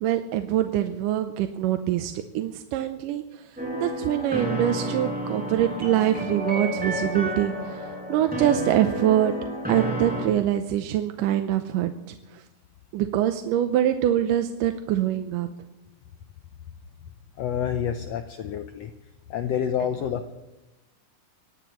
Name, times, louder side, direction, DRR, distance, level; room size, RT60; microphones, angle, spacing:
voice 1, 0.0-3.4 3.7-9.3 9.7-12.4 12.9-15.5, right 11 dB, 85° right, 7 dB, 2.3 m, -24 dB
sound 1, 3.6-10.3, equal, ahead, 6.0 m, -31 dB
voice 2, 17.4-18.9 19.3-20.3, left 8 dB, 80° left, 7 dB, 1.5 m, -28 dB
24.0 x 18.0 x 3.1 m, 0.98 s
omnidirectional pair, 3.8 m